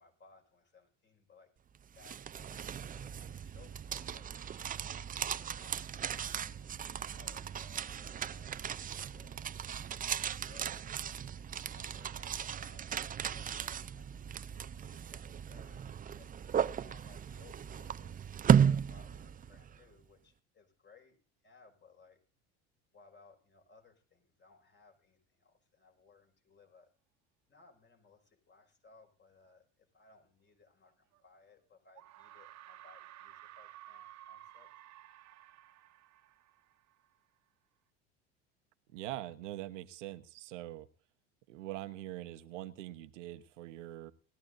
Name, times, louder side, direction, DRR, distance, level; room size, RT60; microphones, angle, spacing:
voice 1, 0.0-1.5 2.0-4.3 4.7-16.3 16.8-21.2 21.4-22.2 22.9-26.9 27.5-34.7, left 4 dB, 30° left, 4 dB, 5.4 m, -63 dB
sound 1, 1.7-19.8, right 8 dB, 25° right, 0.5 m, -35 dB
sound 2, 31.1-31.2 32.0-37.2, right 13 dB, 50° right, 1.2 m, -54 dB
voice 2, 38.9-40.9 41.5-44.1, right 15 dB, 85° right, 11 dB, 1.1 m, -43 dB
20.0 x 13.5 x 2.6 m, 0.40 s
hypercardioid pair, 80°, 36 cm